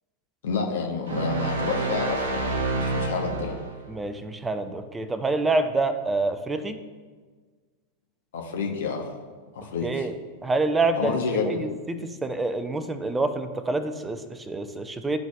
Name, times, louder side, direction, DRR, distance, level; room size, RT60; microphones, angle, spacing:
voice 1, 0.4-3.6 8.3-9.1 9.5-10.1 11.0-11.7, left 4 dB, 60° left, 2 dB, 0.9 m, -29 dB
sound 1, 1.1-3.8, right 3 dB, 65° right, 0.8 m, -28 dB
voice 2, 3.9-6.8 9.8-10.1 10.4-11.2 11.5-15.2, right 3 dB, 10° right, 10 dB, 0.5 m, -27 dB
12.0 x 4.0 x 2.3 m, 1.5 s
figure-of-eight pair, 90°, 0 cm